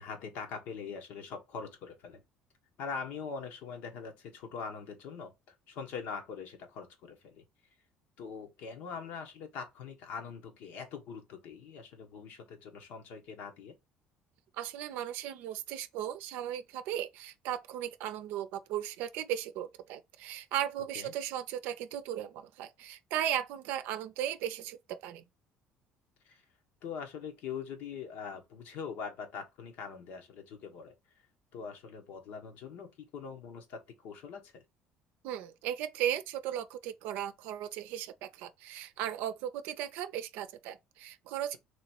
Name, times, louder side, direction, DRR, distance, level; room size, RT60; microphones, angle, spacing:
voice 1, 0.0-2.2 2.8-5.3 5.7-7.4 8.2-13.7 20.9-21.1 26.2-26.4 26.8-30.9 31.5-34.6, left 6 dB, 75° left, 1.1 m, -42 dB
voice 2, 14.6-25.2 35.2-41.6, right 11 dB, 80° right, 0.5 m, -36 dB
3.1 x 3.0 x 4.3 m
cardioid pair, 105°, 3 cm